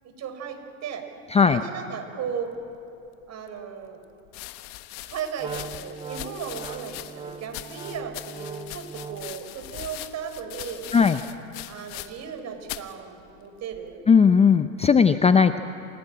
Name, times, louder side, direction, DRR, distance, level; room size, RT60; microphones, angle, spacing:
voice 1, 0.0-1.1 1.5-2.5 3.3-4.0 5.0-10.9 11.7-14.1, right 7 dB, 40° right, 6 dB, 4.5 m, -36 dB
voice 2, 1.3-1.6 10.9-11.2 14.1-15.6, left 6 dB, 15° left, 11 dB, 0.6 m, -17 dB
sound 1, 3.2-3.3 4.3-12.4 12.6-13.0 13.7-14.1, left 16 dB, 55° left, 1.3 m, -40 dB
Wind instrument woodwind instrument, 5.4-9.4, right 5 dB, 15° right, 0.9 m, -40 dB
28.0 x 17.5 x 8.8 m, 2.8 s
hypercardioid pair, 100°, 41 cm